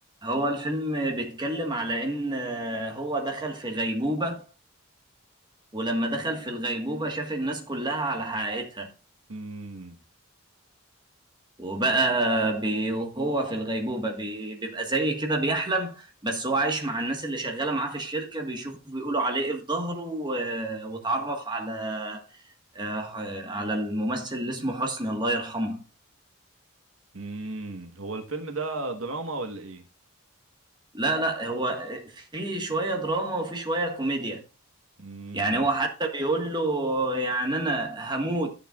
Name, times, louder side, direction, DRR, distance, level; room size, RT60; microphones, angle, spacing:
voice 1, 0.2-4.5 5.7-8.9 11.6-22.2 22.7-25.8 30.9-34.4 35.3-38.5, right 2 dB, 20° right, 1.6 m, -28 dB
voice 2, 9.3-10.0 27.1-29.8 35.0-35.7, right 3 dB, 70° right, 1.4 m, -35 dB
14.0 x 6.7 x 2.4 m
head